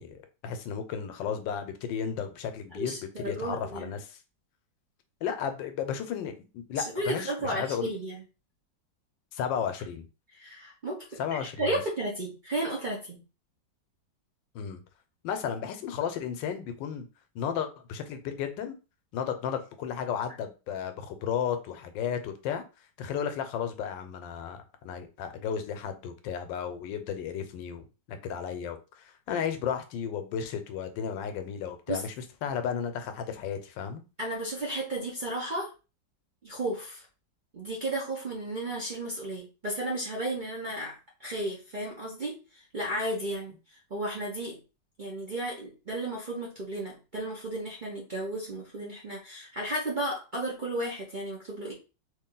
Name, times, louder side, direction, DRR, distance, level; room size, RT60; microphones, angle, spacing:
voice 1, 0.0-4.2 5.2-7.9 9.3-10.1 11.2-11.8 14.5-14.8 15.2-17.1 17.3-18.7 19.1-22.6 23.0-32.1 32.4-34.0, left 7 dB, 85° left, 8 dB, 1.3 m, -34 dB
voice 2, 2.7-3.9 6.7-8.2 10.3-13.2 31.9-32.0 34.2-35.7 36.4-37.0 37.5-40.9 41.2-43.5 43.9-44.6 45.0-51.7, right 1 dB, 40° right, -4 dB, 0.7 m, -33 dB
3.2 x 2.6 x 3.7 m, 0.31 s
omnidirectional pair, 2.0 m